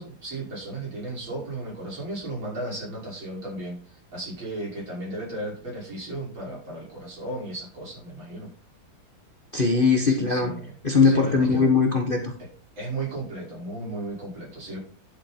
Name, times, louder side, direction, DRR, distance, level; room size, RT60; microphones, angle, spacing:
voice 1, 0.0-8.5 10.0-10.7 11.0-11.8 12.4-12.5 12.8-14.8, right 2 dB, 70° right, -4 dB, 6.4 m, -35 dB
voice 2, 9.5-10.5 10.8-12.3, left 4 dB, 30° left, 3 dB, 1.3 m, -20 dB
11.5 x 7.4 x 4.4 m, 0.41 s
omnidirectional pair, 2.2 m